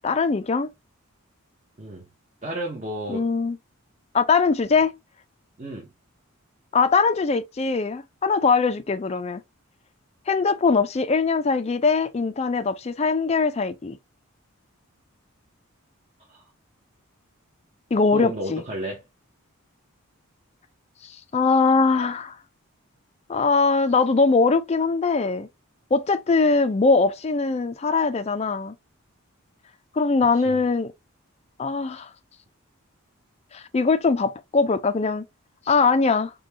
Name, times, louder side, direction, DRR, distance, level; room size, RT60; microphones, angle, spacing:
voice 1, 0.0-0.7 3.1-3.6 4.1-4.9 6.7-9.4 10.3-14.0 17.9-18.6 21.0-22.4 23.3-25.5 25.9-28.7 30.0-30.9 31.6-32.1 33.5-35.2 35.7-36.3, left 4 dB, 30° left, 0.3 m, -21 dB
voice 2, 2.4-3.2 5.6-5.9 16.3-16.4 18.1-19.0 30.3-30.6, right 1 dB, 30° right, 0.8 m, -32 dB
5.2 x 2.3 x 2.8 m
head